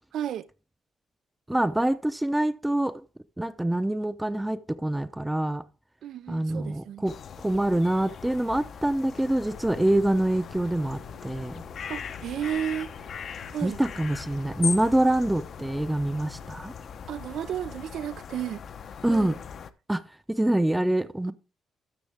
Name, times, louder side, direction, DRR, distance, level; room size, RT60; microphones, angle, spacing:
voice 1, 0.1-0.5 6.0-7.1 11.9-12.9 13.5-13.8 17.1-18.6 19.1-19.4, right 10 dB, 70° right, 0.4 m, -33 dB
voice 2, 1.5-3.0 3.4-5.6 6.3-11.6 13.6-16.7 19.0-19.3 19.9-21.3, right 1 dB, 10° right, 0.6 m, -25 dB
sound 1, 7.1-19.7, left 7 dB, 60° left, 0.7 m, -40 dB
sound 2, 9.5-16.5, left 5 dB, 85° left, 4.3 m, -49 dB
13.0 x 6.9 x 3.5 m
cardioid pair, 90°, 0 cm